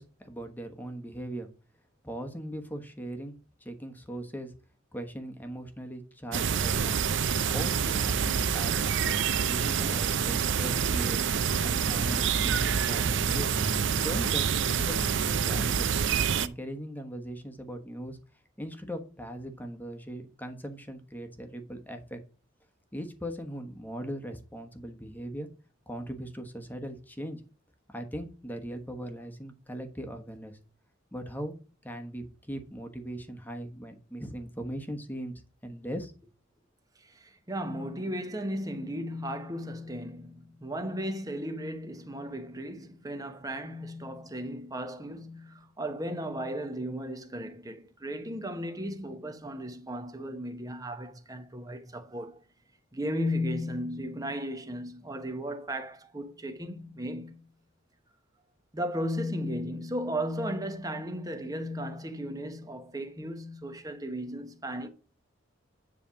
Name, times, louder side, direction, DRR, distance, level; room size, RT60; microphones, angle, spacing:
voice 1, 0.0-1.5 2.0-3.3 3.6-4.5 4.9-7.0 7.5-8.9 9.5-11.2 11.6-13.5 14.0-15.9 16.4-18.2 18.6-22.2 22.9-25.5 25.9-27.4 27.9-30.6 31.1-31.6 31.8-35.3 35.6-36.3, right 1 dB, 10° left, 1.3 m, -39 dB
sound 1, 6.3-16.5, right 7 dB, 65° right, 0.6 m, -27 dB
voice 2, 37.0-52.4 52.9-57.5 58.7-64.9, equal, 20° right, 1.0 m, -35 dB
10.0 x 3.5 x 7.1 m
head